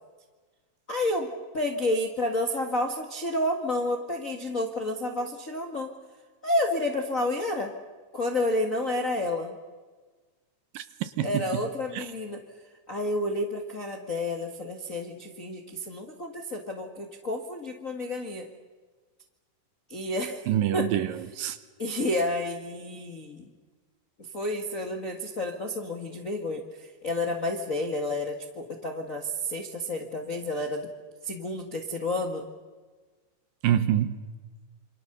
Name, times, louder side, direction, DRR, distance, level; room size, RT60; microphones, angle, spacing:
voice 1, 0.9-5.9 6.4-7.7 8.1-9.6 11.2-12.4 12.9-18.4 19.9-20.4 20.7-20.9 21.8-23.5 24.3-26.6 27.0-30.9 31.2-32.4, left 1 dB, 40° left, 3 dB, 1.1 m, -30 dB
voice 2, 10.7-12.1 20.5-21.6 33.6-34.2, right 11 dB, 70° right, 12 dB, 2.6 m, -27 dB
27.5 x 27.5 x 6.8 m, 1.4 s
omnidirectional pair, 4.4 m